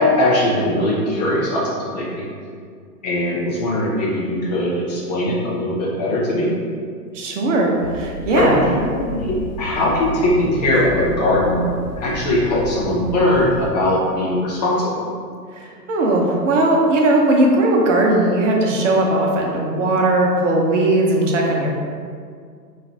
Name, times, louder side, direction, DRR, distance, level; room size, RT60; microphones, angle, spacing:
voice 1, 0.0-2.3 3.0-6.5 8.4-11.6 12.0-15.0, left 1 dB, 25° left, -5 dB, 0.6 m, -20 dB
voice 2, 7.1-8.6 15.5-21.7, right 2 dB, 45° right, -1 dB, 0.9 m, -18 dB
Dog, 7.8-13.7, left 1 dB, 55° left, 1.2 m, -27 dB
5.7 x 3.3 x 2.9 m, 2.1 s
figure-of-eight pair, 120°, 50 cm